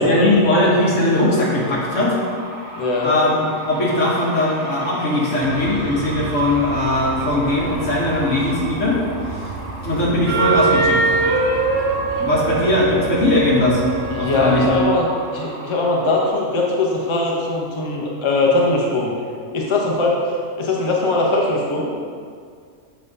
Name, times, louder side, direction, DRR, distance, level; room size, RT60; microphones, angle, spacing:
voice 1, 0.0-2.2 3.0-9.0 9.3-9.5 9.8-11.2 12.2-13.8 14.2-14.6, left 1 dB, 60° left, -5 dB, 1.8 m, -19 dB
sound 1, 1.2-16.3, right 1 dB, 80° right, 1.8 m, -36 dB
voice 2, 2.8-3.1 14.1-15.1 15.3-19.1 19.5-21.9, left 2 dB, 25° left, -2 dB, 0.7 m, -20 dB
sound 2, 5.4-14.8, right 3 dB, 65° right, 1.0 m, -24 dB
7.4 x 3.7 x 5.3 m, 2.2 s
omnidirectional pair, 1.5 m